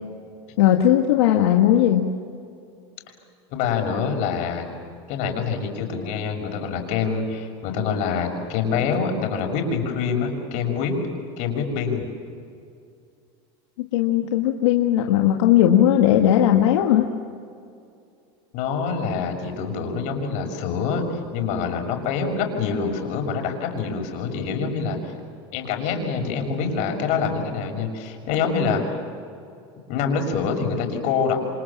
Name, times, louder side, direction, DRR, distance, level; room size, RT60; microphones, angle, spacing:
voice 1, 0.6-2.1 13.9-17.1, left 11 dB, 90° left, 2 dB, 1.9 m, -18 dB
voice 2, 3.5-4.7 5.1-10.9 11.4-12.1 18.5-25.1 25.5-29.0 29.9-31.4, left 5 dB, 60° left, 4 dB, 6.5 m, -25 dB
28.5 x 26.5 x 7.4 m, 2.4 s
supercardioid pair, 115°, 14 cm